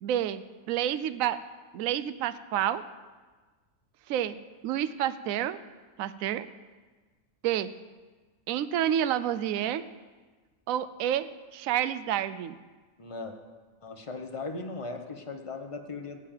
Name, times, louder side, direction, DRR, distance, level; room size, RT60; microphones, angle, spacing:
voice 1, 0.0-1.4 1.7-2.8 4.1-4.4 4.6-5.6 6.0-6.5 7.4-7.7 8.5-9.8 10.7-11.3 11.5-12.6, right 11 dB, 80° right, 14 dB, 1.0 m, -29 dB
voice 2, 13.0-13.3 13.8-16.2, left 3 dB, 25° left, 4 dB, 1.1 m, -38 dB
15.5 x 5.3 x 9.0 m, 1.3 s
omnidirectional pair, 1.4 m